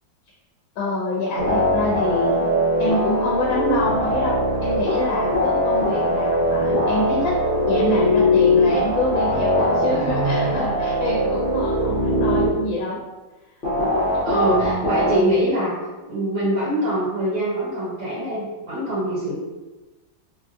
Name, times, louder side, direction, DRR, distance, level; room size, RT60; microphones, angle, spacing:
voice 1, 0.8-2.5 2.8-7.4 7.7-13.0 14.5-15.5, left 1 dB, 85° left, -4 dB, 1.3 m, -26 dB
sound 1, 1.4-12.5 13.6-15.2, left 1 dB, 60° left, 0.5 m, -21 dB
voice 2, 9.9-10.6 14.2-15.8 16.1-19.4, right 1 dB, 55° right, -10 dB, 1.6 m, -24 dB
3.8 x 2.2 x 2.6 m, 1.2 s
omnidirectional pair, 2.0 m